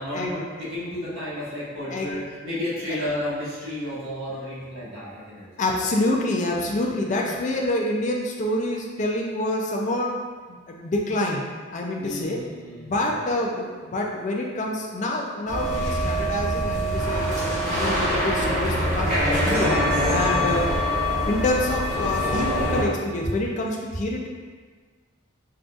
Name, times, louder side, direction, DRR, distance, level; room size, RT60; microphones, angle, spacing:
voice 1, 0.0-5.5 12.0-13.1 20.1-20.5, left 1 dB, 70° right, -9 dB, 1.2 m, -32 dB
voice 2, 5.6-10.2 10.5-12.4 12.8-20.7 21.3-24.3, left 1 dB, 35° left, 0 dB, 0.4 m, -27 dB
sound 1, 15.5-22.8, equal, 40° right, 0.9 m, -24 dB
3.7 x 2.4 x 2.4 m, 1.5 s
head